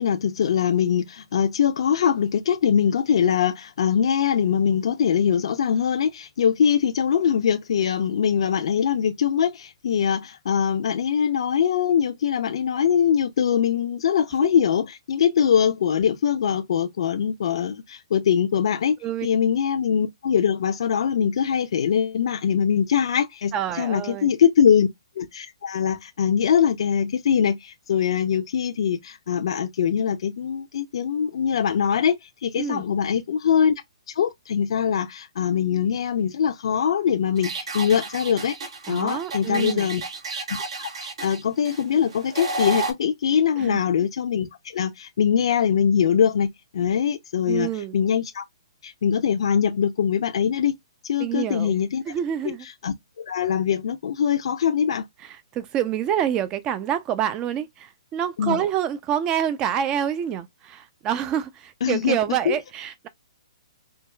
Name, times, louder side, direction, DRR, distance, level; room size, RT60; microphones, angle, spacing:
voice 1, 0.0-19.0 19.2-24.9 25.2-32.1 32.4-33.7 34.2-38.5 38.9-40.0 40.3-40.5 40.8-48.4 48.8-50.7 51.0-52.0 52.4-52.5 52.8-55.0 58.4-58.6 61.8-62.2 62.5-62.6, left 8 dB, 65° left, 0.5 m, -22 dB
voice 2, 23.5-24.3 32.6-32.8 38.9-39.9 43.6-43.8 47.5-48.0 51.2-51.7 52.1-52.7 55.2-63.1, right 9 dB, 20° right, 0.4 m, -27 dB
sound 1, 37.4-42.9, right 3 dB, 70° right, 1.2 m, -32 dB
4.5 x 2.4 x 2.2 m
hypercardioid pair, 145°, 3 cm